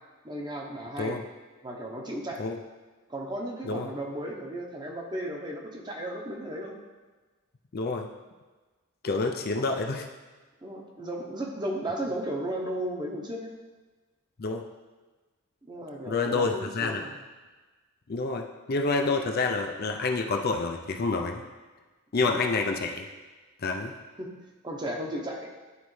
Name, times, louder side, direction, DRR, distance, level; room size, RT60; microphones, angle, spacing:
voice 1, 0.2-1.1 1.6-2.4 3.1-6.8 9.4-9.5 10.6-13.5 15.7-17.1 22.3-22.4 24.2-24.3 24.6-25.5, right 1 dB, 20° right, 0 dB, 0.8 m, -35 dB
voice 2, 7.7-8.1 9.0-10.1 14.4-14.6 16.1-17.0 18.1-21.4 22.1-23.1 23.6-23.9, left 3 dB, 45° left, 3 dB, 0.5 m, -28 dB
11.0 x 4.1 x 3.2 m, 1.3 s
head